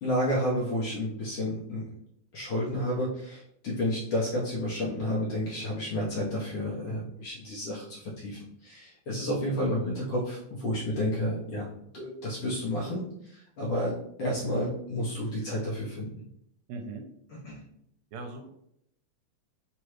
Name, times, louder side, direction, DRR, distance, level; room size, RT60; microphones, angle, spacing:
voice 1, 0.0-1.9 2.3-13.9 14.2-16.1 17.3-17.6, left 1 dB, 65° left, -5 dB, 1.4 m, -31 dB
voice 2, 16.7-17.0 18.1-18.5, right 3 dB, 80° right, 4 dB, 1.8 m, -39 dB
4.6 x 3.0 x 3.1 m, 0.74 s
omnidirectional pair, 3.3 m